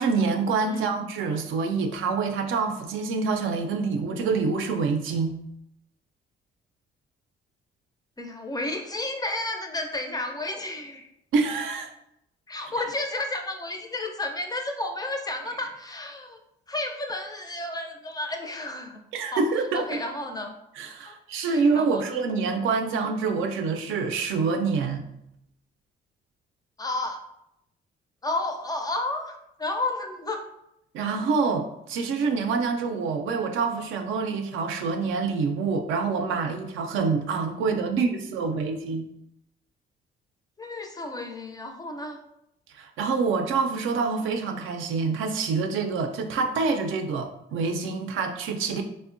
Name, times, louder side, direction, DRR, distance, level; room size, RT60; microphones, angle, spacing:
voice 1, 0.0-5.4 11.3-11.9 19.1-20.0 20.8-25.0 30.9-39.1 42.7-48.8, right 4 dB, 80° right, 4 dB, 0.4 m, -26 dB
voice 2, 8.2-11.1 12.5-16.4 16.7-19.0 19.3-19.4 19.7-20.5 21.1-21.2 21.5-22.2 26.8-27.2 28.2-30.4 40.6-42.2, left 2 dB, 20° left, 4 dB, 0.4 m, -32 dB
3.5 x 2.1 x 2.5 m, 0.81 s
cardioid pair, 90°, 20 cm